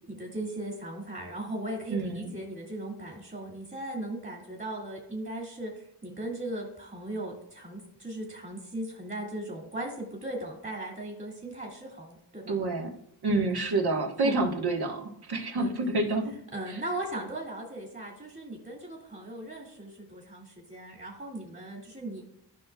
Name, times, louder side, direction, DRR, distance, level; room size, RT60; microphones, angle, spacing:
voice 1, 0.1-12.5 13.3-13.4 14.2-14.4 15.6-15.7 16.5-22.2, right 1 dB, 30° right, -2 dB, 2.4 m, -38 dB
voice 2, 1.9-2.3 12.5-12.9 13.2-16.3 16.7-16.8, right 2 dB, 60° right, 2 dB, 1.6 m, -28 dB
14.5 x 5.8 x 2.4 m, 0.75 s
wide cardioid pair, 90°, 43 cm